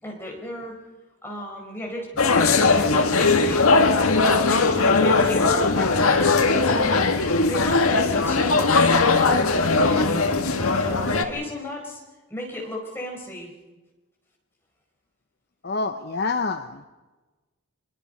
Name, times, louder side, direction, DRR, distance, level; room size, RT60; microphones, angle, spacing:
voice 1, 0.0-0.8 1.2-6.3 6.5-7.0 7.4-9.5 9.8-10.2 10.5-12.0 12.3-13.5, left 1 dB, 10° left, -1 dB, 4.8 m, -34 dB
sound 1, 2.2-11.2, left 3 dB, 75° left, 1.7 m, -19 dB
voice 2, 15.6-16.9, left 4 dB, 45° left, 8 dB, 0.8 m, -27 dB
25.0 x 22.0 x 5.4 m, 1.2 s
head